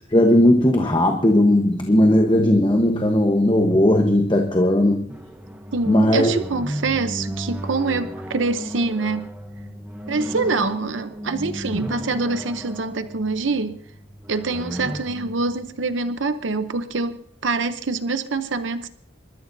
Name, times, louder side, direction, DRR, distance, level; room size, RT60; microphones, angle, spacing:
voice 1, 0.1-5.1 5.9-6.3, left 1 dB, 25° left, 2 dB, 1.1 m, -17 dB
sound 1, 5.1-16.7, equal, 10° right, 0.9 m, -35 dB
voice 2, 5.7-9.3 10.1-13.8 14.3-18.9, right 3 dB, 90° right, 10 dB, 0.8 m, -25 dB
28.0 x 13.5 x 2.7 m, 0.63 s
head